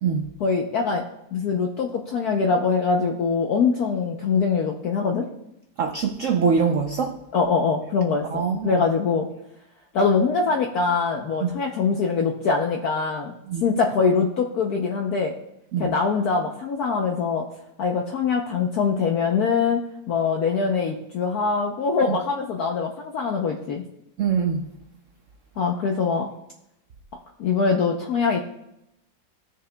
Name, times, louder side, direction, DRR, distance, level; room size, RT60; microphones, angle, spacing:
voice 1, 0.4-1.0 1.3-5.3 7.3-9.3 9.9-13.3 13.6-15.3 15.8-17.5 17.8-19.8 20.1-23.8 25.6-26.3 27.4-28.4, left 5 dB, 65° left, 1 dB, 1.0 m, -23 dB
voice 2, 5.8-7.2 8.3-8.8 11.4-11.5 13.5-13.6 15.7-15.9 22.1-22.2 24.2-24.7, right 6 dB, 80° right, 5 dB, 0.7 m, -23 dB
15.5 x 6.7 x 2.2 m, 0.84 s
omnidirectional pair, 2.1 m